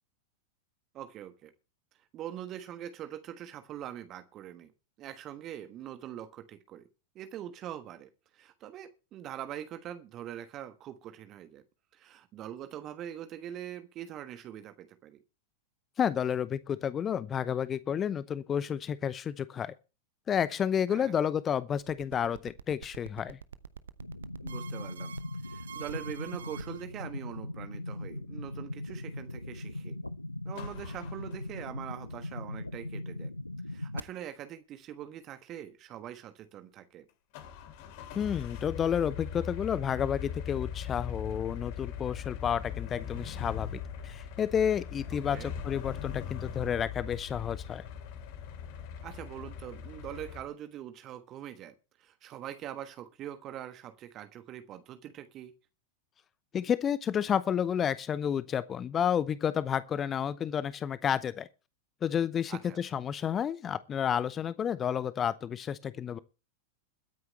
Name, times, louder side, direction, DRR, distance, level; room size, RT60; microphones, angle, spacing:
voice 1, 0.9-1.5 2.1-4.7 5.0-6.8 7.1-11.6 11.9-15.2 20.9-21.2 24.4-25.1 25.4-30.0 30.4-33.3 33.7-37.1 45.3-45.5 49.0-55.5 62.5-62.8, right 11 dB, 35° right, 1.3 m, -43 dB
voice 2, 16.0-19.7 20.3-23.4 38.1-47.8 56.5-61.5 62.0-66.2, left 8 dB, 25° left, 0.7 m, -31 dB
sound 1, 21.8-26.8, right 8 dB, 70° right, 0.8 m, -46 dB
sound 2, 24.0-34.0, left 1 dB, 85° left, 0.6 m, -40 dB
sound 3, 30.5-31.8 37.3-50.4, left 8 dB, 45° left, 2.5 m, -40 dB
22.0 x 9.5 x 3.2 m
figure-of-eight pair, 90°, 0 cm